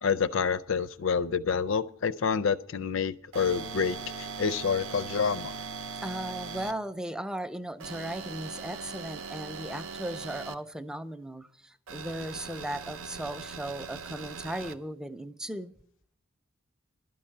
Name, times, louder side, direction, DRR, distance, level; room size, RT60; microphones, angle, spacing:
voice 1, 0.0-5.5, left 6 dB, 65° left, 0.5 m, -28 dB
sound 1, 3.3-6.7 7.8-10.5 11.9-14.7, right 5 dB, 75° right, 0.7 m, -40 dB
voice 2, 6.0-15.7, right 1 dB, 5° right, 0.4 m, -37 dB
12.0 x 5.5 x 8.6 m
head